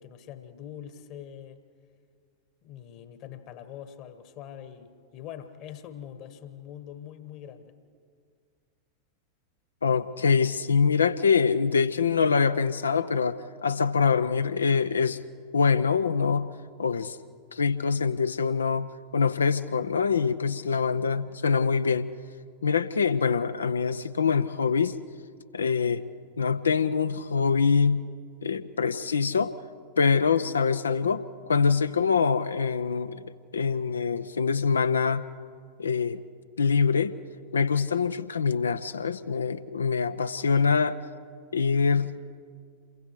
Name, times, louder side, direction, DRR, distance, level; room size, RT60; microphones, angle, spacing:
voice 1, 0.0-1.6 2.6-7.7, left 9 dB, 40° left, 10 dB, 1.5 m, -43 dB
voice 2, 9.8-15.2 15.5-16.5 16.8-17.2 17.5-22.1 22.6-25.0 25.5-26.0 26.4-28.0 28.4-29.5 30.0-33.2 33.5-35.3 35.8-36.2 36.6-37.1 37.5-41.0 41.5-42.2, left 5 dB, 70° left, 13 dB, 0.7 m, -24 dB
27.5 x 22.5 x 4.7 m, 2.1 s
figure-of-eight pair, 90°, 0 cm